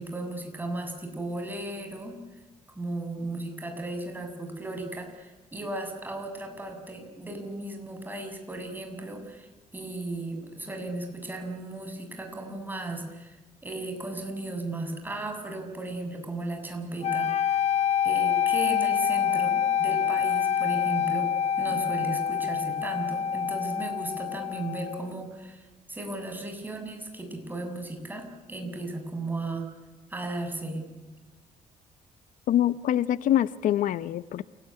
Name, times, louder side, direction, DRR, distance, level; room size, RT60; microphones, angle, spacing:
voice 1, 0.0-2.2 2.8-13.4 13.6-17.6 18.0-21.3 21.6-29.7 30.1-30.9, right 2 dB, 15° right, 4 dB, 6.8 m, -36 dB
sound 1, 17.0-25.1, left 8 dB, 50° left, 1.2 m, -26 dB
voice 2, 32.5-34.4, left 11 dB, 80° left, 15 dB, 0.8 m, -24 dB
29.0 x 18.5 x 9.9 m, 1.2 s
cardioid pair, 115°, 13 cm